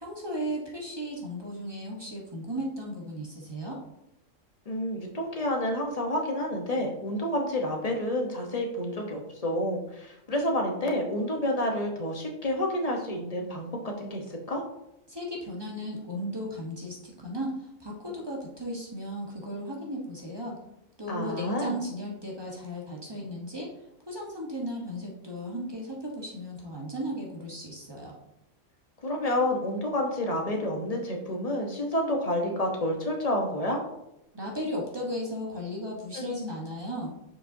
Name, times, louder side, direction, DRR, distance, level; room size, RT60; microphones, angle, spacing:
voice 1, 0.0-3.8 15.1-20.6 21.0-23.7 24.1-28.1 34.3-37.1, equal, 20° right, -2 dB, 1.1 m, -35 dB
voice 2, 4.7-14.6 21.1-21.7 29.0-33.8 36.1-36.3, left 1 dB, 30° left, 1 dB, 1.0 m, -29 dB
7.2 x 5.3 x 2.7 m, 0.85 s
omnidirectional pair, 1.4 m